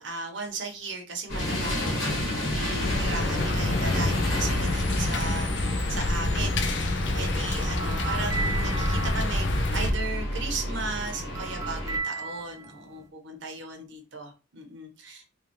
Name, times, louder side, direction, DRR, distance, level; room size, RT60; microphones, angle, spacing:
voice 1, 0.0-15.3, right 3 dB, 60° right, 3 dB, 1.0 m, -36 dB
sound 1, 1.3-12.0, left 1 dB, 80° left, 1.8 m, -31 dB
sound 2, 2.8-9.9, left 2 dB, 60° left, 0.6 m, -27 dB
sound 3, 6.2-10.2 10.6-13.1, right 4 dB, 15° right, 0.3 m, -37 dB
3.4 x 3.3 x 3.0 m, 0.32 s
head